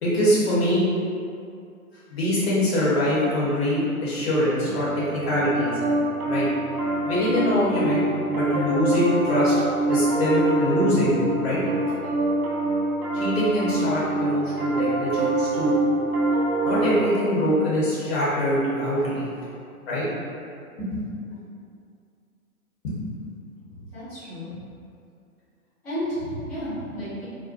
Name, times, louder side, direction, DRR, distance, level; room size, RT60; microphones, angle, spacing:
voice 1, 0.0-0.8 2.1-4.9 5.1-5.7 6.3-6.5 7.0-8.0 8.3-9.5 9.9-11.6 13.1-15.7 16.6-19.3 19.8-20.0 20.8-21.0 22.8-22.9, equal, 45° left, -8 dB, 1.0 m, -23 dB
Piano, 4.6-17.1, right 2 dB, 75° right, 0.6 m, -25 dB
voice 2, 23.7-24.6 25.8-27.2, equal, 5° left, -16 dB, 0.4 m, -32 dB
2.6 x 2.1 x 2.5 m, 2.4 s
figure-of-eight pair, 125°, 44 cm